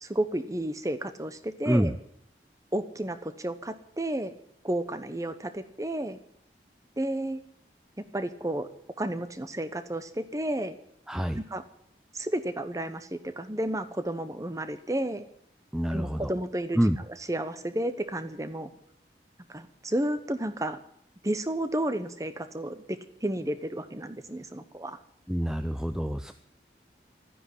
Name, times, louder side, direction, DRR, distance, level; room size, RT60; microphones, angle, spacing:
voice 1, 0.0-2.0 2.7-4.3 4.6-6.2 7.0-7.4 8.0-8.7 9.0-10.8 11.3-11.6 12.1-15.2 15.9-18.7 19.5-20.8 21.2-25.0, right 1 dB, 20° right, 12 dB, 0.9 m, -32 dB
voice 2, 11.1-11.4 15.7-16.3 16.8-17.0 25.3-26.3, equal, 5° right, 8 dB, 0.5 m, -26 dB
13.0 x 9.9 x 9.9 m, 0.69 s
head